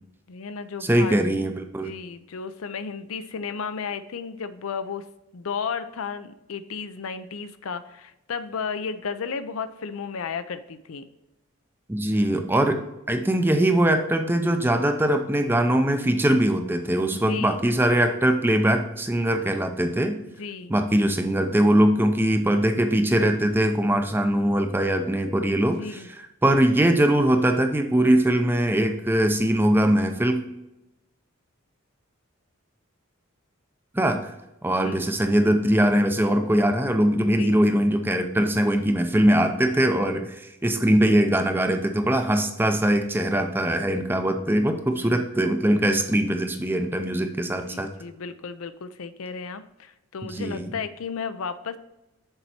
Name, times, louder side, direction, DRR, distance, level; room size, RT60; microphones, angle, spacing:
voice 1, 0.3-1.2 1.8-5.1 5.3-11.0 17.1-17.6 20.4-20.8 25.8-26.1 34.8-35.0 37.4-37.6 45.0-45.2 47.7-51.8, left 5 dB, 80° left, 11 dB, 0.5 m, -34 dB
voice 2, 0.8-1.9 11.9-12.8 13.1-20.2 20.7-30.4 33.9-34.3 34.6-47.9 50.2-50.7, right 1 dB, 10° right, 6 dB, 0.5 m, -22 dB
6.7 x 4.5 x 4.3 m, 0.92 s
head